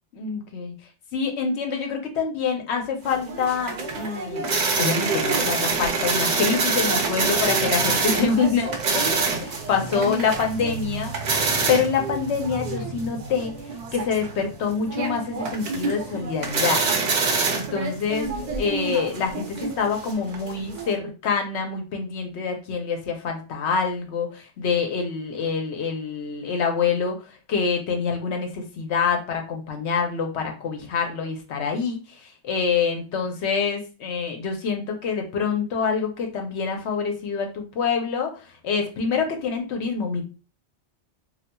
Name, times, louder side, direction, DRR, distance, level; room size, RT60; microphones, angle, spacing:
voice 1, 0.1-0.7 1.1-9.1 9.4-11.1 11.7-13.6 13.9-16.8 17.5-18.3 18.6-27.2 27.5-40.2, left 5 dB, 75° left, 3 dB, 1.0 m, -26 dB
sound 1, 3.0-20.9, right 4 dB, 50° right, 0.6 m, -26 dB
4.0 x 2.4 x 2.2 m, 0.33 s
omnidirectional pair, 1.2 m